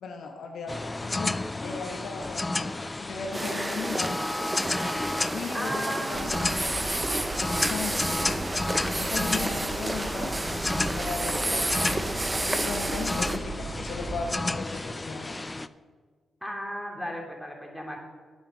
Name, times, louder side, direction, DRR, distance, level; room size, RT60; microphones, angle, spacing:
voice 1, 0.0-4.2 5.3-6.8 7.2-8.1 9.0-10.4 11.0-12.1 12.4-15.4, left 4 dB, 70° left, 3 dB, 1.0 m, -37 dB
sound 1, 0.7-15.7, left 2 dB, 25° left, 0.4 m, -32 dB
sound 2, 3.3-13.4, right 1 dB, 20° right, 0.8 m, -31 dB
voice 2, 5.5-6.3 16.4-18.0, equal, ahead, 0 dB, 2.8 m, -35 dB
sound 3, 6.1-14.3, right 3 dB, 45° right, 1.2 m, -38 dB
8.9 x 7.2 x 6.3 m, 1.5 s
hypercardioid pair, 45°, 0 cm